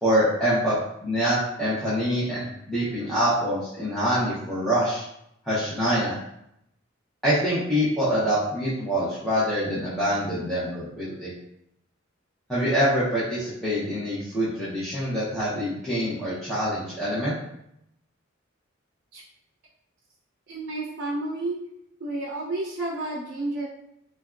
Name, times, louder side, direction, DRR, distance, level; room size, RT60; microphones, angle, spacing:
voice 1, 0.0-5.0 5.4-6.1 7.2-11.3 12.5-17.4, equal, ahead, -12 dB, 0.6 m, -25 dB
voice 2, 20.5-21.6 22.0-23.7, right 2 dB, 55° right, -4 dB, 0.6 m, -31 dB
3.3 x 2.2 x 2.4 m, 0.78 s
head